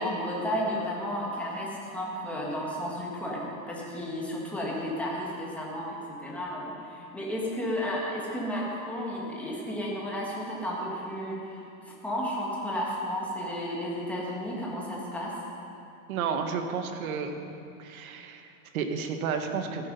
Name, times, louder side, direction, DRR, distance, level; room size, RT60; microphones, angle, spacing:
voice 1, 0.0-15.3, equal, 5° left, -5 dB, 1.6 m, -33 dB
voice 2, 16.1-17.4 17.8-19.9, right 6 dB, 90° right, 6 dB, 1.4 m, -32 dB
15.5 x 8.9 x 5.4 m, 2.7 s
supercardioid pair, 175°, 41 cm